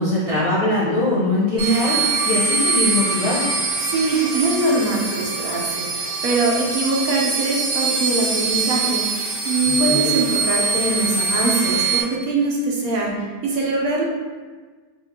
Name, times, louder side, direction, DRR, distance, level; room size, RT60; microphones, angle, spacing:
voice 1, 0.0-3.5 9.7-10.1, left 1 dB, 30° left, -10 dB, 0.7 m, -21 dB
sound 1, 1.6-12.0, right 4 dB, 5° right, 1.1 m, -23 dB
voice 2, 3.8-13.2 13.4-14.0, right 2 dB, 70° right, -2 dB, 1.0 m, -22 dB
5.4 x 2.5 x 2.7 m, 1.4 s
omnidirectional pair, 1.7 m